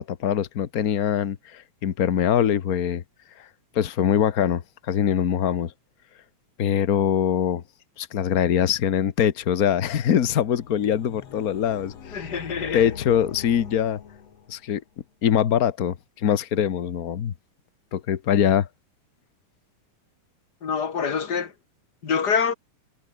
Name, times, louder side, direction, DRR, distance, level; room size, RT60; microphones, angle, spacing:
voice 1, 0.0-3.0 3.4-3.5 3.7-5.7 6.6-7.6 8.0-12.3 12.7-14.0 14.5-14.8 15.2-17.3 17.9-18.7, left 9 dB, 85° left, 0.8 m, -23 dB
sound 1, 10.2-14.8, left 7 dB, 60° left, 3.5 m, -42 dB
voice 2, 12.1-12.9 20.6-21.5 22.0-22.5, left 6 dB, 35° left, 2.2 m, -25 dB
omnidirectional pair, 3.3 m